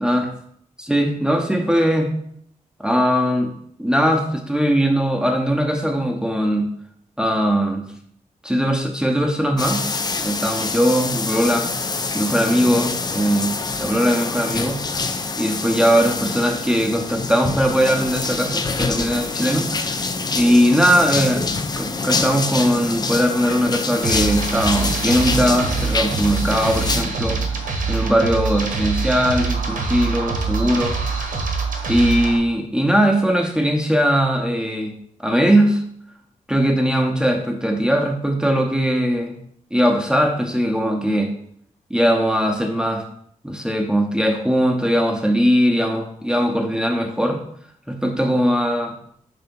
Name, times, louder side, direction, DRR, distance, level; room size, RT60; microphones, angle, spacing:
voice 1, 0.9-2.1 2.8-3.5 3.8-6.7 7.2-7.9 8.4-9.8 10.2-11.7 12.1-13.5 13.8-14.8 15.4-20.0 20.3-21.4 21.8-27.4 27.9-31.0 31.9-34.9 35.2-35.8 36.5-39.3 39.7-41.3 41.9-43.1 43.4-47.4 47.9-48.9, equal, 5° right, 2 dB, 0.7 m, -19 dB
sound 1, 9.6-27.0, left 4 dB, 30° left, 0.4 m, -26 dB
sound 2, 24.0-32.4, right 4 dB, 85° right, 1.0 m, -24 dB
5.5 x 3.4 x 5.2 m, 0.66 s
wide cardioid pair, 145°, 13 cm